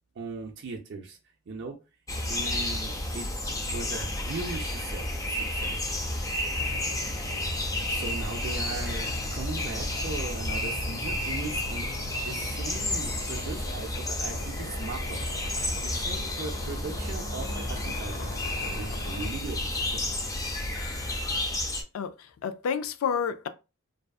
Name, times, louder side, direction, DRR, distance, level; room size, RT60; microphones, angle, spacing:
voice 1, 0.2-1.2 1.5-1.8 2.3-3.3 3.7-5.9 7.8-11.9 12.1-15.2 15.8-18.3 18.6-20.1, right 3 dB, 55° right, 0.5 m, -38 dB
sound 1, 2.1-21.8, left 1 dB, 15° left, 0.5 m, -31 dB
sound 2, 6.6-19.3, left 2 dB, 55° left, 0.8 m, -41 dB
voice 2, 21.9-23.5, left 7 dB, 80° left, 0.3 m, -30 dB
2.6 x 2.3 x 2.3 m
head